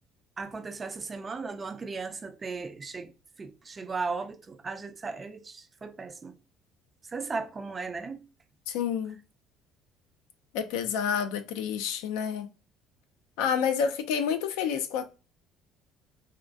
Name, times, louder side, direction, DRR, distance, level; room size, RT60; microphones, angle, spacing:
voice 1, 0.4-3.1 3.4-6.3 7.1-8.2, right 4 dB, 30° right, 0.4 m, -36 dB
voice 2, 8.7-9.2 10.5-12.5 13.4-15.0, left 7 dB, 85° left, 0.4 m, -29 dB
3.5 x 2.2 x 2.4 m
supercardioid pair, 90°, 0 cm